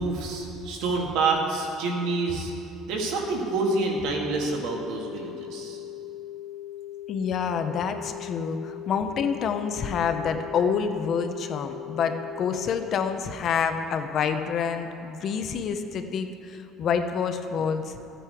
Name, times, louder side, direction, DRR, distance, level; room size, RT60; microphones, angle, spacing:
voice 1, 0.0-2.5 2.9-5.8, right 3 dB, 70° right, 0 dB, 2.0 m, -27 dB
sound 1, 3.2-13.2, left 13 dB, 80° left, 0.6 m, -39 dB
voice 2, 7.1-18.0, left 6 dB, 40° left, 7 dB, 0.7 m, -27 dB
14.0 x 9.1 x 4.7 m, 2.8 s
cardioid pair, 165°, 0 cm